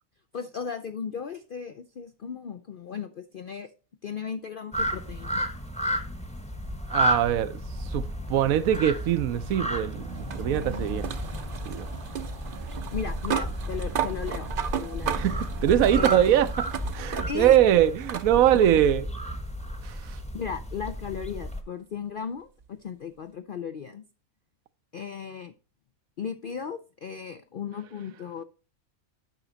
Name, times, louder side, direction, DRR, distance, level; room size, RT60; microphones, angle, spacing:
voice 1, 0.3-3.7 4.0-5.4 12.9-15.2 16.0-16.2 17.1-17.6 19.9-24.0 24.9-25.5 26.2-28.4, left 7 dB, 65° left, 0.5 m, -36 dB
sound 1, 4.7-21.6, equal, 5° left, 0.9 m, -32 dB
voice 2, 6.9-11.1 11.6-11.9 15.1-16.5 16.9-19.0 19.8-20.2, right 11 dB, 75° right, 1.0 m, -23 dB
sound 2, 8.7-17.6 18.1-18.3 19.6-19.7 22.6-22.7, right 8 dB, 50° right, 0.7 m, -35 dB
9.0 x 6.0 x 3.9 m
omnidirectional pair, 1.5 m